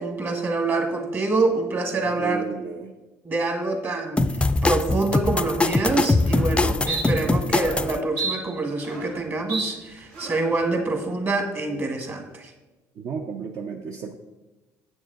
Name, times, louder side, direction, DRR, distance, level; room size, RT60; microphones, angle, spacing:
voice 1, 0.0-2.5 3.2-4.2 4.6-12.5, right 3 dB, 30° right, 4 dB, 1.5 m, -26 dB
voice 2, 2.2-2.9 13.0-14.1, right 6 dB, 55° right, 3 dB, 0.6 m, -33 dB
sound 1, 4.2-8.0, left 2 dB, 15° left, 0.4 m, -22 dB
sound 2, 5.7-5.8 6.2-6.5 6.9-7.0 7.5-7.8 8.2-9.2 9.5-9.7 10.1-10.5, right 4 dB, 85° right, 2.1 m, -31 dB
7.9 x 6.2 x 3.9 m, 1.1 s
supercardioid pair, 70°, 7 cm